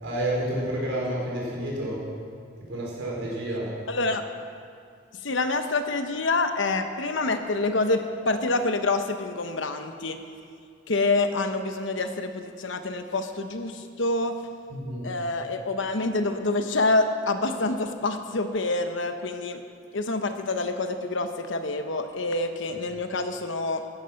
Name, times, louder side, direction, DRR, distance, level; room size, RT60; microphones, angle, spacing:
voice 1, 0.0-2.0 2.7-3.7 14.7-15.1, right 1 dB, 85° right, -4 dB, 4.7 m, -29 dB
voice 2, 3.9-4.3 5.2-10.2 10.9-14.4 15.0-19.6 19.9-23.8, left 2 dB, 75° left, 7 dB, 1.0 m, -27 dB
14.5 x 10.5 x 6.6 m, 2.3 s
head